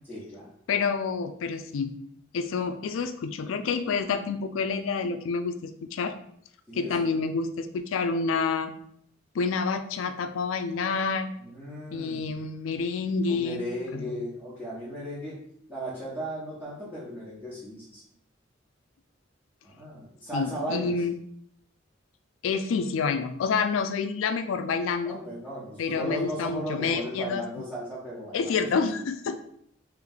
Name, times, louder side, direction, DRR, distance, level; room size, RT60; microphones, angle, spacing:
voice 1, 0.1-0.5 6.7-7.2 11.4-12.2 13.3-15.4 15.7-18.0 19.6-21.0 25.0-28.5, equal, 5° right, -10 dB, 1.1 m, -36 dB
voice 2, 0.7-1.9 2.3-6.1 6.7-8.7 9.3-11.3 11.9-13.7 13.9-14.1 20.3-21.1 22.4-25.2 25.8-27.4 28.3-29.4, left 5 dB, 85° left, 9 dB, 0.4 m, -28 dB
3.3 x 3.1 x 3.7 m, 0.66 s
head